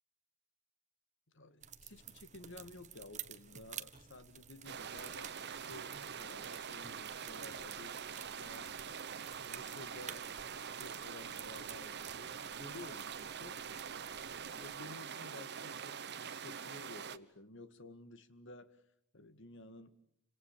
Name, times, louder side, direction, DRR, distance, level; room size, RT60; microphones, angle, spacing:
voice 1, 1.3-8.7 9.5-10.3 10.7-13.6 14.4-18.8 19.1-20.0, left 2 dB, 65° left, 11 dB, 2.0 m, -53 dB
sound 1, 1.6-14.8, right 9 dB, 35° right, 1.4 m, -53 dB
sound 2, 4.6-17.2, right 7 dB, 55° right, 1.1 m, -44 dB
29.5 x 26.5 x 7.4 m, 0.70 s
head